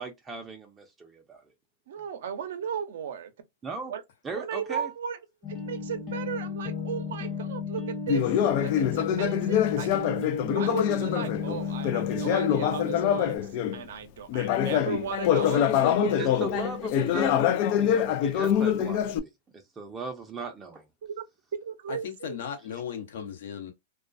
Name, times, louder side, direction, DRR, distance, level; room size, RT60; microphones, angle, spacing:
voice 1, 0.0-1.4 3.6-3.9 4.2-4.9 16.2-17.3 17.8-20.9, right 4 dB, 20° right, 0.5 m, -38 dB
voice 2, 1.9-3.3 3.9-4.0 4.3-5.2 5.5-8.3 8.6-10.1 10.5-13.4 13.7-16.5 21.0-21.2 21.6-22.4, right 8 dB, 75° right, 0.6 m, -36 dB
sound 1, 5.4-13.4, left 4 dB, 30° left, 0.9 m, -34 dB
Conversation, 8.1-13.8 14.3-19.2, left 10 dB, 55° left, 0.4 m, -25 dB
voice 3, 21.9-23.7, left 8 dB, 70° left, 0.8 m, -36 dB
2.3 x 2.2 x 2.5 m
hypercardioid pair, 115°, 0 cm